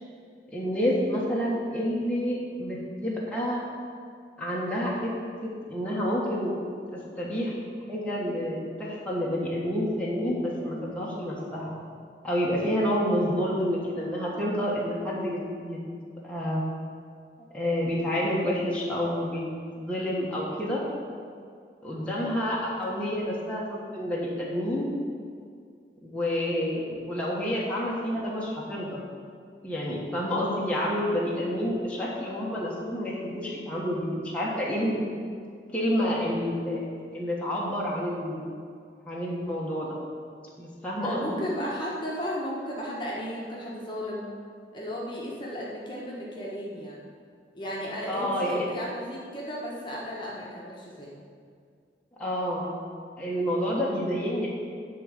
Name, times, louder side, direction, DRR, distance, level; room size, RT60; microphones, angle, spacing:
voice 1, 0.5-3.6 4.4-5.1 5.4-6.5 6.9-7.6 7.9-11.7 12.2-15.8 16.2-16.6 17.5-19.4 19.8-20.8 21.8-24.9 26.0-29.0 29.6-35.1 35.7-36.9 37.1-38.4 39.0-40.0 40.6-41.5 48.1-48.6 52.2-52.7 53.2-54.5, equal, 5° left, -6 dB, 1.3 m, -29 dB
voice 2, 41.0-44.3 44.7-47.0 47.5-51.1, equal, 25° left, -5 dB, 1.3 m, -34 dB
10.5 x 3.9 x 7.5 m, 2.2 s
head